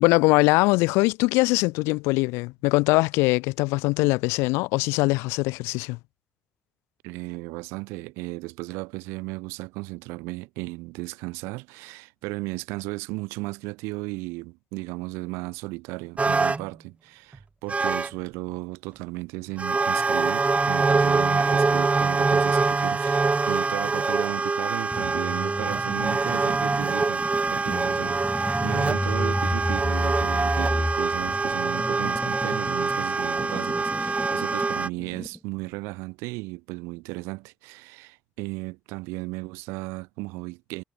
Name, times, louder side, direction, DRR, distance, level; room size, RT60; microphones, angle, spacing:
voice 1, 0.0-6.0, left 24 dB, 75° left, 0.8 m, -22 dB
voice 2, 7.0-40.8, right 25 dB, 75° right, 1.2 m, -35 dB
sound 1, 16.2-16.7 17.3-17.4 17.7-18.1 19.6-34.9, right 4 dB, 30° right, 0.9 m, -24 dB
sound 2, 24.9-35.4, left 1 dB, 10° left, 5.0 m, -32 dB
hypercardioid pair, 45°, 4 cm